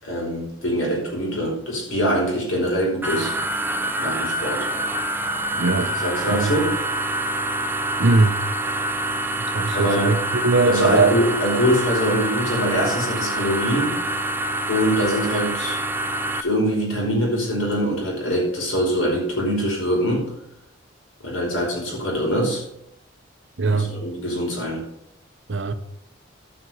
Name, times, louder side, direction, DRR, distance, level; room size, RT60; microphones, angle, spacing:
voice 1, 0.0-3.4 4.0-4.7 5.9-6.7 9.7-10.1 10.6-14.0 14.7-15.8 16.3-20.3 21.2-22.6 23.6-24.8, equal, 85° left, 5.1 m, -23 dB
sound 1, 3.0-16.4, right 1 dB, 10° right, 0.4 m, -26 dB
voice 2, 5.6-5.9 6.3-6.6 8.0-8.4 9.5-11.2 23.6-23.9 25.5-25.7, right 3 dB, 65° right, 0.9 m, -20 dB
12.5 x 6.1 x 5.5 m
head